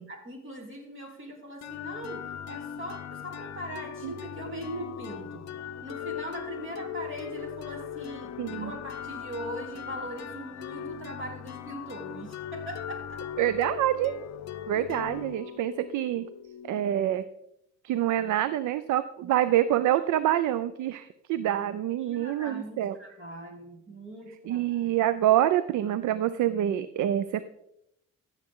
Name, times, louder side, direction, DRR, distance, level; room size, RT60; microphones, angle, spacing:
voice 1, 0.1-5.5 5.8-13.2 14.7-15.0 22.0-25.0, equal, 40° right, 1 dB, 3.1 m, -40 dB
sound 1, 1.6-17.2, left 9 dB, 60° left, 0.7 m, -39 dB
voice 2, 8.4-8.7 13.4-14.2 14.7-16.3 16.6-17.2 17.8-23.0 24.5-27.4, right 12 dB, 75° right, 14 dB, 0.5 m, -26 dB
14.5 x 7.3 x 3.7 m, 0.82 s
cardioid pair, 90°, 30 cm